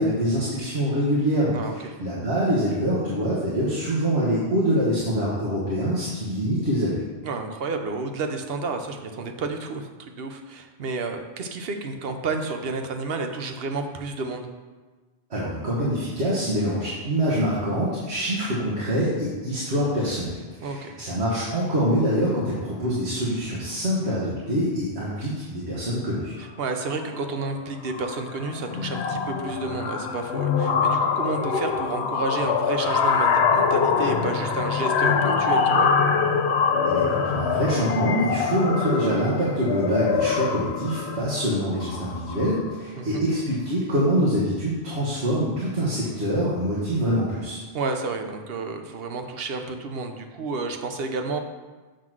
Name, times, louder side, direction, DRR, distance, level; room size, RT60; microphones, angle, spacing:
voice 1, 0.0-7.0 15.3-26.3 36.9-47.6, equal, 90° right, -7 dB, 1.7 m, -25 dB
voice 2, 7.2-14.5 20.6-20.9 26.4-35.9 42.9-43.2 47.7-51.4, right 3 dB, 70° right, 5 dB, 1.0 m, -31 dB
sound 1, 26.7-27.0 27.3-27.6 27.8-42.7, left 5 dB, 90° left, 0.9 m, -24 dB
7.0 x 3.8 x 6.1 m, 1.3 s
omnidirectional pair, 1.1 m